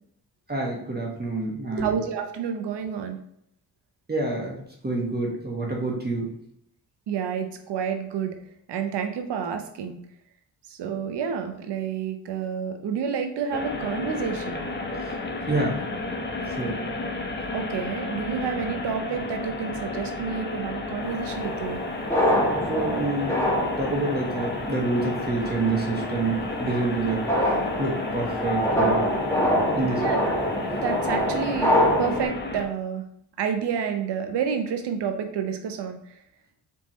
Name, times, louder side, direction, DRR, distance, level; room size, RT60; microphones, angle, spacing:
voice 1, 0.5-2.0 4.1-4.6 4.8-6.3 14.9-15.1 15.5-15.8 16.4-16.7 22.7-23.4 23.8-27.2 27.8-29.0 29.8-30.0, right 3 dB, 25° right, -2 dB, 1.3 m, -27 dB
voice 2, 1.7-3.2 7.1-8.4 8.7-10.0 10.8-14.7 17.5-21.8 29.9-30.2 30.8-33.0 33.4-36.0, right 7 dB, 85° right, 6 dB, 0.7 m, -29 dB
sound 1, 13.5-32.7, left 3 dB, 25° left, 0.8 m, -33 dB
sound 2, 21.0-32.2, equal, 5° left, 1.2 m, -26 dB
4.3 x 3.6 x 3.1 m, 0.72 s
cardioid pair, 75°, 40 cm